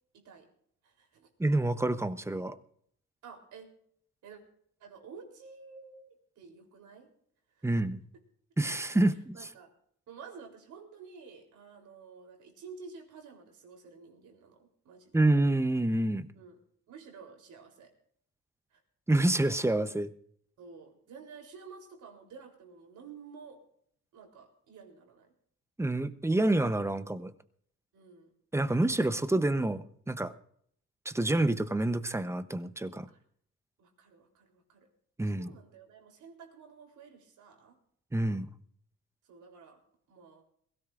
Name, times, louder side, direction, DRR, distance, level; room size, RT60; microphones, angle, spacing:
voice 1, 0.1-0.5 0.8-1.3 3.2-3.7 4.2-4.4 4.8-7.1 7.5-7.7 9.3-9.7 10.1-15.2 16.3-16.6 16.9-17.9 18.7-18.8 20.6-23.6 24.1-25.3 27.9-28.3 33.1-33.2 33.8-34.9 35.4-37.8 39.3-39.8 40.1-40.4, right 5 dB, 75° right, 2 dB, 3.7 m, -51 dB
voice 2, 1.4-2.6 7.6-8.0 8.6-9.4 15.1-16.3 19.1-20.1 25.8-27.3 28.5-30.3 31.0-33.1 35.2-35.5 38.1-38.5, right 2 dB, 10° right, 11 dB, 0.8 m, -28 dB
22.0 x 16.5 x 2.6 m, 0.66 s
cardioid pair, 90°, 30 cm